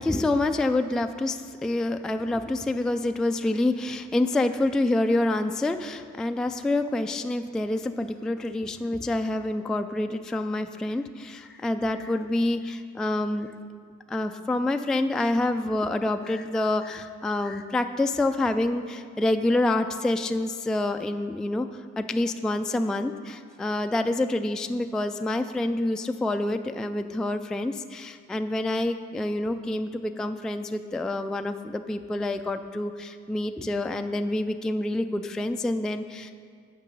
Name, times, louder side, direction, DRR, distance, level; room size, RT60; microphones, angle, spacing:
voice 1, 0.0-13.5 14.1-36.3, left 2 dB, ahead, 7 dB, 0.3 m, -27 dB
9.1 x 5.4 x 6.7 m, 2.2 s
cardioid pair, 90°, 30 cm